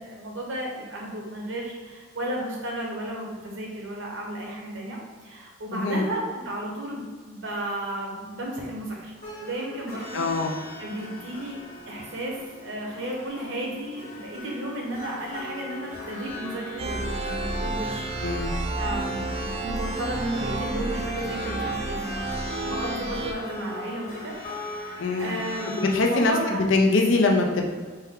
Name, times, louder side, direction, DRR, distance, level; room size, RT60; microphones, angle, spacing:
voice 1, 0.0-9.1 9.4-10.3 10.8-18.3 18.8-22.0 22.3-22.4 22.6-26.6, right 1 dB, 80° right, -1 dB, 0.9 m, -33 dB
voice 2, 5.7-6.1 10.1-10.6 18.2-18.5 25.0-25.4 25.8-27.7, left 3 dB, 80° left, 1 dB, 0.6 m, -23 dB
sound 1, 9.2-26.3, left 2 dB, 40° left, 1.3 m, -40 dB
sound 2, 16.8-23.3, right 2 dB, 30° right, 0.3 m, -30 dB
4.3 x 2.2 x 3.7 m, 1.5 s
head